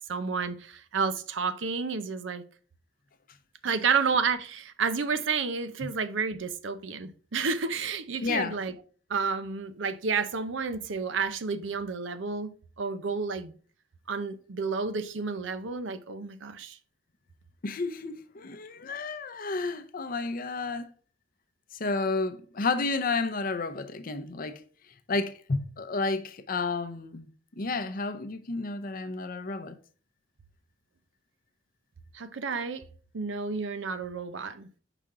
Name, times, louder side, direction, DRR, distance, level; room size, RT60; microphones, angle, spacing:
voice 1, 0.1-2.4 3.6-8.7 9.1-12.5 12.8-13.5 14.1-16.8 32.1-32.8 33.1-34.7, right 5 dB, 75° right, 0.6 m, -30 dB
voice 2, 8.2-8.6 17.6-20.9 21.7-24.6 25.1-27.3 27.6-29.8, left 3 dB, 50° left, 0.6 m, -31 dB
5.8 x 5.0 x 3.7 m
head